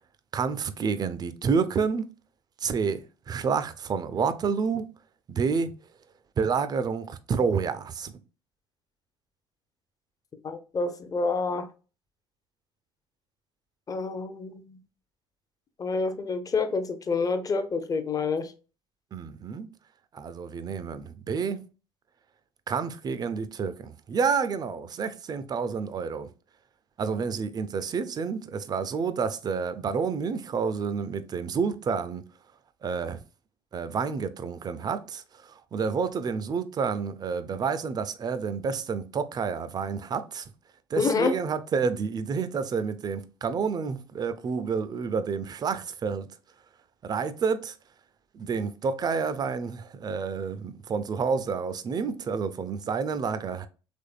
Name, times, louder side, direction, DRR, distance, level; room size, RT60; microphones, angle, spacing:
voice 1, 0.3-2.1 2.6-3.0 3.3-4.9 5.3-5.7 6.4-8.1 19.1-19.7 20.1-21.6 22.7-26.3 27.0-32.2 32.8-33.2 33.7-35.2 35.7-40.4 40.9-46.3 47.0-47.7 48.3-53.7, right 5 dB, 30° right, 0.4 m, -29 dB
voice 2, 10.4-11.7 13.9-14.8 15.8-18.5 41.0-41.4, left 4 dB, 25° left, 0.6 m, -28 dB
3.4 x 3.2 x 2.3 m
figure-of-eight pair, 60°, 14 cm